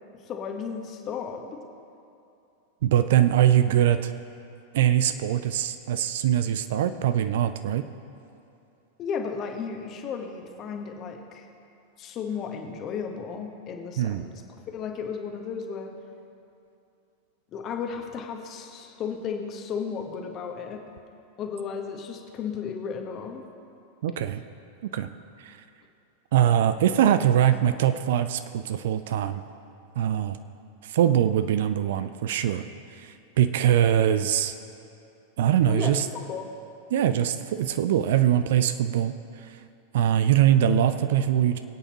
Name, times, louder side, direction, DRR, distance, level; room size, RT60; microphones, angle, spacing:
voice 1, 0.3-1.6 9.0-11.5 12.0-14.4 14.7-15.9 17.5-20.8 21.4-23.4 35.7-35.9 36.2-36.5, left 6 dB, 30° left, 4 dB, 1.3 m, -34 dB
voice 2, 2.8-4.1 4.7-7.8 14.0-14.2 24.0-24.4 24.8-25.1 25.4-25.5 26.3-29.4 30.0-30.4 30.9-32.6 33.0-34.5 35.4-36.0 36.9-39.1 39.9-41.6, right 10 dB, 55° right, 10 dB, 0.5 m, -22 dB
22.0 x 8.7 x 3.0 m, 2.7 s
figure-of-eight pair, 90°, 0 cm